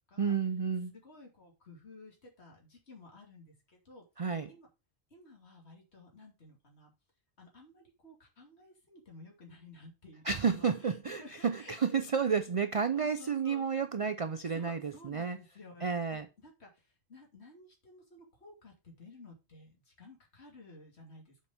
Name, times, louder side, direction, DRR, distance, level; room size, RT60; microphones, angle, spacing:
voice 1, 0.2-0.9 4.2-4.5 10.2-15.4 15.8-16.3, right 6 dB, 45° right, 0.4 m, -31 dB
voice 2, 0.9-4.0 4.5-4.7 5.1-6.9 7.4-12.3 13.0-13.7 14.5-21.4, left 2 dB, 65° left, 2.9 m, -54 dB
7.3 x 5.4 x 5.1 m
omnidirectional pair, 1.2 m